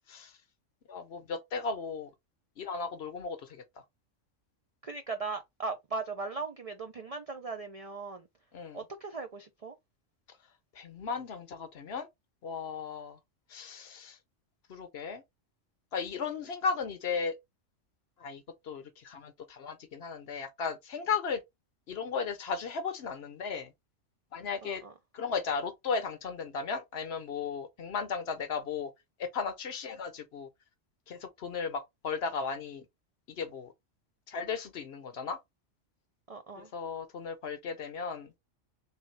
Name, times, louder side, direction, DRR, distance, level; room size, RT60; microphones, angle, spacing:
voice 1, 0.9-2.1 2.6-3.6 8.5-8.8 10.7-12.1 12.4-13.2 13.5-14.2 14.7-15.2 15.9-17.3 18.2-21.4 21.9-23.7 24.3-24.8 25.1-28.9 29.2-30.5 31.1-32.9 33.3-33.7 34.3-35.4 36.6-38.4, left 5 dB, 60° left, 0.9 m, -35 dB
voice 2, 4.8-8.3 8.7-9.7 24.6-24.9 36.3-36.7, right 4 dB, 60° right, 0.3 m, -38 dB
3.4 x 3.2 x 3.1 m
omnidirectional pair, 1.3 m